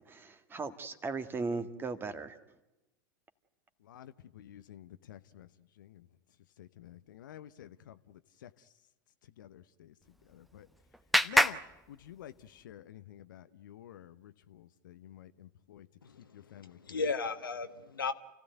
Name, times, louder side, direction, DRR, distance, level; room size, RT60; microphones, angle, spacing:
voice 1, 0.1-2.4, right 3 dB, 20° right, 1.8 m, -37 dB
voice 2, 3.8-6.1 6.6-8.7 9.2-10.7 11.2-11.6 11.9-17.1, left 11 dB, 65° left, 0.8 m, -51 dB
Clapping, 10.0-12.6, equal, ahead, 0.9 m, -31 dB
voice 3, 16.0-18.1, left 4 dB, 80° left, 1.5 m, -36 dB
28.5 x 16.0 x 9.3 m
figure-of-eight pair, 90°, 11 cm